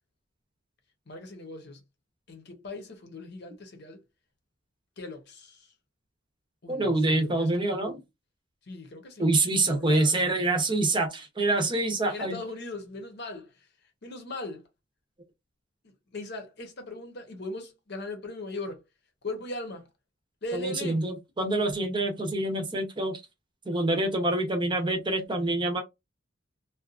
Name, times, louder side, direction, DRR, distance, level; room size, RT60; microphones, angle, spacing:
voice 1, 1.1-1.8 2.3-4.0 5.0-5.7 6.6-7.5 8.7-10.1 12.1-13.7 14.0-14.6 15.8-18.8 19.2-19.9 20.4-21.0, left 2 dB, 60° left, 0.9 m, -39 dB
voice 2, 6.7-8.0 9.2-12.4 20.5-23.2 23.7-25.8, right 2 dB, 25° right, 0.7 m, -26 dB
2.7 x 2.3 x 2.4 m
head